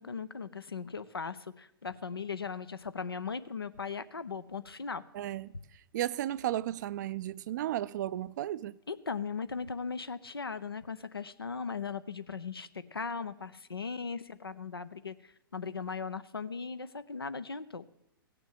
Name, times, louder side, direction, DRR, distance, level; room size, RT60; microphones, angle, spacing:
voice 1, 0.0-5.0 8.9-17.9, left 5 dB, 85° left, 0.7 m, -38 dB
voice 2, 5.1-5.5 5.9-8.8, right 13 dB, 50° right, 0.4 m, -34 dB
16.5 x 6.9 x 7.4 m
figure-of-eight pair, 110°, 12 cm